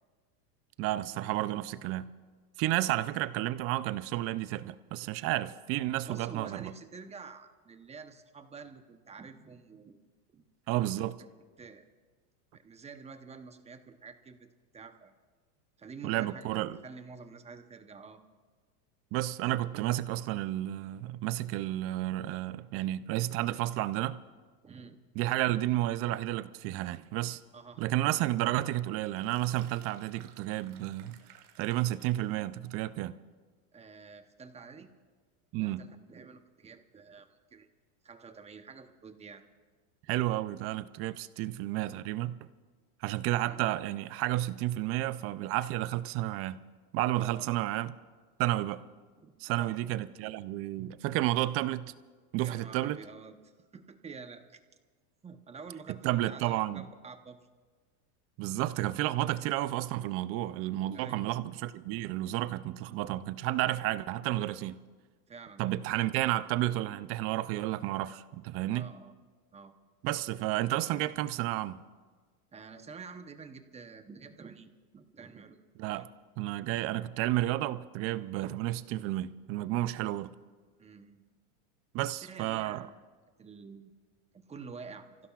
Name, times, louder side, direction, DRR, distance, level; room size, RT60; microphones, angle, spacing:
voice 1, 0.8-2.1 2.6-6.7 10.7-11.2 16.0-16.8 19.1-24.2 25.2-27.4 27.8-31.2 31.6-33.2 35.5-35.9 40.1-42.4 43.0-46.6 46.9-47.9 48.4-48.8 49.4-51.9 52.3-53.0 55.9-56.9 58.4-64.8 65.6-68.9 70.0-71.8 75.8-76.1 76.4-80.3 81.9-82.9, right 15 dB, 35° right, 0.4 m, -31 dB
voice 2, 6.0-10.0 10.3-10.4 10.7-11.0 11.6-11.8 12.5-14.5 14.7-15.1 15.8-18.2 24.6-25.0 27.5-28.1 33.7-34.9 35.6-37.7 38.0-39.4 43.4-43.6 47.2-47.5 49.2-49.8 52.4-54.6 55.2-57.4 60.9-61.3 65.3-65.8 68.7-69.2 69.5-69.7 72.5-75.6 75.9-76.1 80.8-81.2 82.1-83.0 83.4-83.9 84.3-85.1, right 5 dB, 15° right, 0.8 m, -48 dB
sound 1, 29.1-32.3, right 11 dB, 75° right, 1.6 m, -58 dB
30.0 x 16.0 x 2.4 m
supercardioid pair, 120°, 46 cm